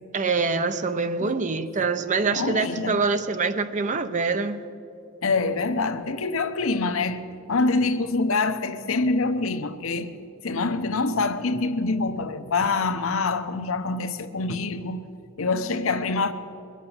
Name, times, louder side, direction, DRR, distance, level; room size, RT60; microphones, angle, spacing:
voice 1, 0.1-4.6, right 4 dB, 35° right, 0.6 m, -25 dB
voice 2, 2.3-3.0 5.2-7.2 7.5-10.1 10.4-15.1 15.4-16.3, left 3 dB, 70° left, 0.8 m, -25 dB
22.0 x 7.5 x 7.0 m
head